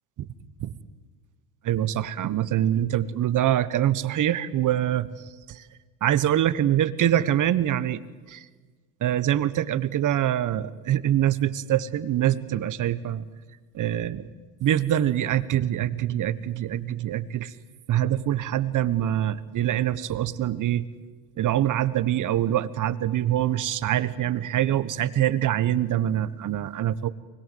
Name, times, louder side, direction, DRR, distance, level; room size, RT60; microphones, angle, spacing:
voice 1, 1.6-5.1 5.5-5.6 6.0-8.0 8.3-8.4 9.0-13.2 13.7-14.3 14.6-17.5 17.9-20.9 21.4-27.1, right 11 dB, 40° right, 14 dB, 1.3 m, -24 dB
24.5 x 20.5 x 7.9 m, 1.4 s
hypercardioid pair, 95°, 49 cm